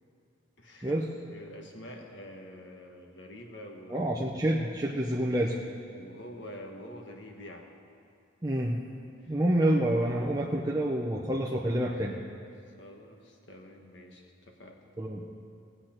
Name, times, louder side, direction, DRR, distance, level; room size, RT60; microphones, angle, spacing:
voice 1, 0.6-1.0 1.3-4.4 5.9-7.7 9.2-9.4 12.8-14.8, left 1 dB, 60° left, 2 dB, 1.4 m, -47 dB
voice 2, 3.9-5.6 8.4-8.8 9.3-12.2 15.0-15.2, right 1 dB, 15° right, -3 dB, 0.7 m, -28 dB
18.5 x 8.0 x 4.4 m, 2.5 s
head